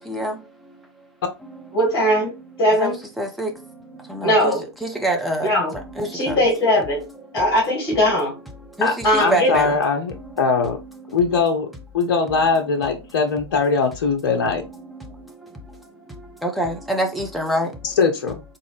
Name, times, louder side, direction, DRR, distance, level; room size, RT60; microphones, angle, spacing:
voice 1, 1.7-2.3 2.6-3.0 4.2-4.6 5.4-5.7 6.1-7.0 7.3-8.3 9.0-9.5, equal, 30° left, 1.6 m, -19 dB
voice 2, 2.8-3.5 4.1-4.5 4.8-5.5 6.0-6.4 8.8-9.7 16.4-17.7, right 1 dB, ahead, 0.5 m, -25 dB
voice 3, 9.2-10.8 11.1-11.7 11.9-14.6 17.8-18.4, left 4 dB, 55° left, 0.6 m, -21 dB
3.7 x 2.4 x 3.2 m
figure-of-eight pair, 105°, 14 cm